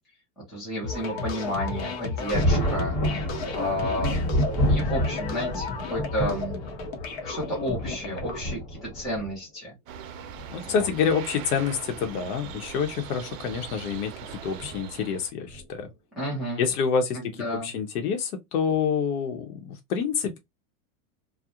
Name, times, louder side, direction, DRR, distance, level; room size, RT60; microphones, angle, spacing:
voice 1, 0.4-3.0 3.6-4.4 4.7-6.6 7.2-9.7 10.6-10.9 16.2-16.7 17.1-17.7, equal, ahead, 0.3 m, -31 dB
sound 1, 0.8-8.4, left 4 dB, 45° left, 0.6 m, -34 dB
Thunder, 2.3-9.3 10.4-10.5 11.9-12.2 12.5-12.6 14.6-14.8 15.5-15.9, equal, 20° left, 1.1 m, -28 dB
sound 2, 9.9-15.3, right 8 dB, 65° right, 0.6 m, -41 dB
voice 2, 10.5-14.1 14.4-15.9 16.6-20.4, left 6 dB, 85° left, 0.8 m, -27 dB
2.4 x 2.0 x 2.7 m
supercardioid pair, 155°, 44 cm